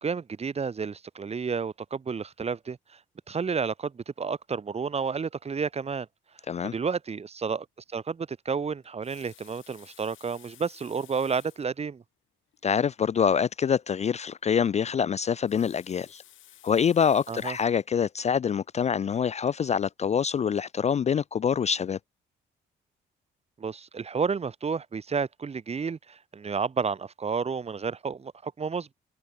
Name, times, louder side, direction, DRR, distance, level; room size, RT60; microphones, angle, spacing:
voice 1, 0.0-2.8 3.3-6.1 6.7-12.0 17.3-17.6 23.6-28.9, right 5 dB, 30° right, 1.0 m, -31 dB
Water tap faucet, 8.8-11.8 12.5-12.6 12.9-13.0 15.2-17.8 18.5-18.7, left 13 dB, 80° left, 2.5 m, -54 dB
voice 2, 12.6-16.2 16.6-22.0, left 7 dB, 35° left, 0.4 m, -25 dB
open air
cardioid pair, 90°, 20 cm